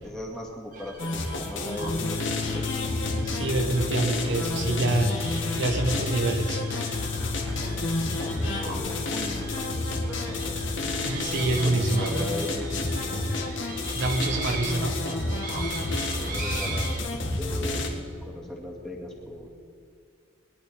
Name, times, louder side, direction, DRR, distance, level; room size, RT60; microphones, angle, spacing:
voice 1, 0.0-2.6 3.0-3.3 8.4-10.6 11.5-13.3 16.0-19.5, left 1 dB, 5° left, -3 dB, 2.2 m, -39 dB
sound 1, 0.7-17.0, right 3 dB, 45° right, 1.7 m, -41 dB
sound 2, 1.0-17.9, left 2 dB, 65° left, 1.8 m, -30 dB
sound 3, 2.0-16.0, left 6 dB, 35° left, 0.9 m, -36 dB
voice 2, 3.3-5.3 5.5-6.6 11.0-12.3 13.9-15.0, right 2 dB, 65° right, 4 dB, 1.1 m, -26 dB
21.5 x 11.0 x 4.4 m, 2.2 s
head